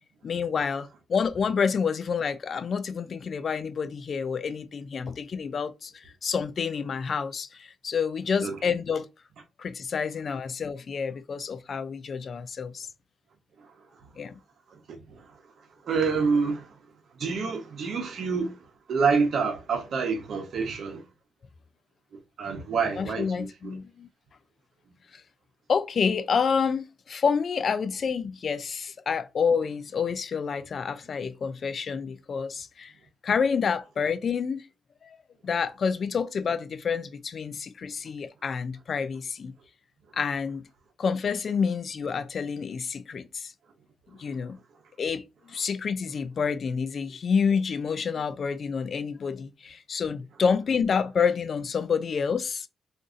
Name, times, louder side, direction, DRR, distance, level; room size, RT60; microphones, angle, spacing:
voice 1, 0.2-9.1 9.6-12.9 14.2-14.4 23.0-24.1 25.1-25.2 25.7-32.9 33.2-34.7 35.0-35.2 35.4-39.5 40.1-40.6 41.0-43.5 44.2-44.6 45.0-52.7, left 6 dB, 55° left, 0.3 m, -28 dB
voice 2, 14.9-15.3 15.8-16.7 17.2-18.6 18.9-21.0 22.4-23.8, right 5 dB, 70° right, 0.8 m, -27 dB
2.6 x 2.4 x 3.7 m
cardioid pair, 90°, 0 cm